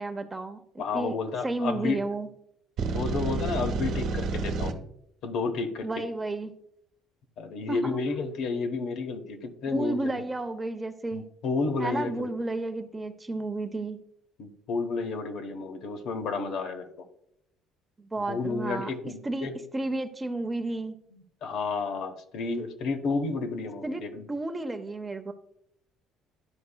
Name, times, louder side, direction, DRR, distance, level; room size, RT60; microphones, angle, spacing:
voice 1, 0.0-1.2 1.4-2.3 5.8-6.5 7.7-8.0 9.7-11.2 11.8-14.0 18.0-21.0 23.8-25.3, right 2 dB, 15° right, 7 dB, 0.6 m, -32 dB
voice 2, 0.8-2.0 2.9-4.7 5.2-6.0 7.4-10.2 11.1-12.3 14.4-17.1 18.3-19.6 21.1-24.3, left 4 dB, 65° left, 5 dB, 0.9 m, -31 dB
sound 1, 2.8-4.7, right 4 dB, 65° right, 0.9 m, -29 dB
11.5 x 4.6 x 2.2 m, 0.73 s
cardioid pair, 120°, 0 cm